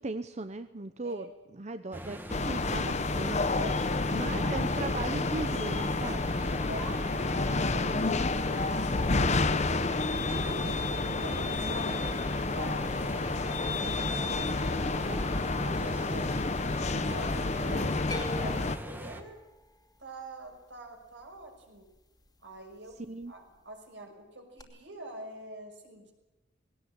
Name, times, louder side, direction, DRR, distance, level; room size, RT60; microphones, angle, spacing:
voice 1, 0.0-3.4 4.1-6.3 6.7-6.9 17.6-18.0 23.1-23.3, right 2 dB, 40° right, 10 dB, 0.8 m, -38 dB
sound 1, 1.9-19.2, equal, 10° right, 1.9 m, -42 dB
sound 2, 2.3-18.8, left 3 dB, 40° left, 1.0 m, -30 dB
voice 2, 3.5-4.1 4.4-4.7 6.7-12.1 12.5-16.3 16.9-19.4 20.0-21.9 22.4-23.0 23.3-26.1, right 1 dB, 75° right, 3 dB, 6.4 m, -45 dB
sound 3, 18.1-22.3 22.6-23.3 24.6-24.7, left 2 dB, 20° left, 2.7 m, -44 dB
20.0 x 18.0 x 8.8 m, 1.0 s
head